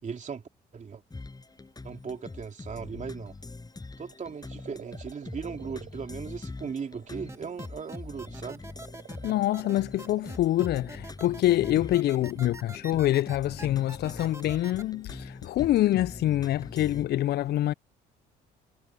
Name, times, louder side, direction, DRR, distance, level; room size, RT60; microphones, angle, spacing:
voice 1, 0.0-0.4 0.7-1.0 1.8-3.3 4.0-8.6 12.4-12.5, right 6 dB, 40° right, 3.2 m, -38 dB
sound 1, 1.1-17.0, left 3 dB, 20° left, 6.6 m, -43 dB
sound 2, 4.1-7.6 7.9-10.5 11.5-11.6, right 9 dB, 55° right, 5.3 m, -50 dB
sound 3, 7.3-14.8, right 2 dB, 15° right, 2.3 m, -44 dB
voice 2, 9.2-17.7, left 14 dB, 60° left, 0.5 m, -26 dB
supercardioid pair, 70°, 19 cm